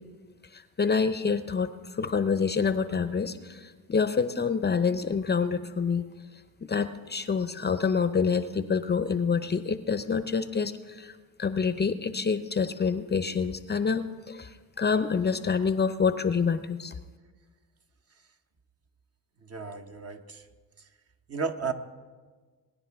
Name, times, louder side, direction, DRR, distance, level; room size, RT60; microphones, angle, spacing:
voice 1, 0.5-6.1 6.6-16.9, left 5 dB, 25° left, 11 dB, 0.6 m, -27 dB
voice 2, 19.4-20.4 21.3-21.7, right 5 dB, 40° right, 6 dB, 1.0 m, -33 dB
21.0 x 10.0 x 3.5 m, 1.4 s
cardioid pair, 75°, 38 cm